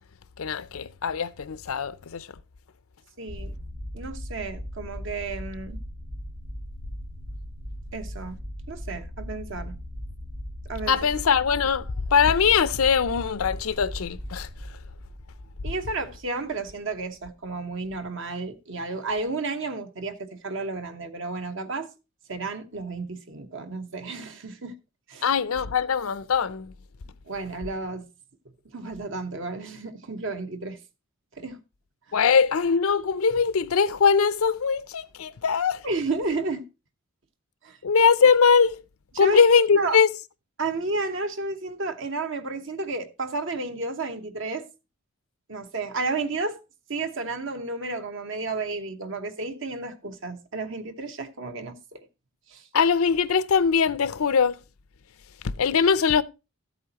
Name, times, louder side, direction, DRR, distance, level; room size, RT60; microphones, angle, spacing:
voice 1, 0.4-2.3 10.9-14.5 25.2-26.7 32.1-35.8 37.8-38.8 39.2-40.1 52.7-54.6 55.4-56.2, left 6 dB, 70° left, 0.5 m, -21 dB
voice 2, 3.2-3.5 3.9-5.8 7.9-8.4 8.7-9.8 10.7-11.0 15.6-21.9 22.3-24.7 25.1-25.3 27.3-28.1 28.7-30.8 31.3-31.6 32.1-32.2 35.8-36.6 37.6-37.8 39.1-39.4 39.8-40.0 40.6-44.7 45.5-46.6 46.9-52.0 52.5-52.7, right 3 dB, 60° right, 1.1 m, -32 dB
sound 1, 3.3-16.3, equal, 90° right, 5.1 m, -38 dB
13.0 x 8.2 x 2.9 m
head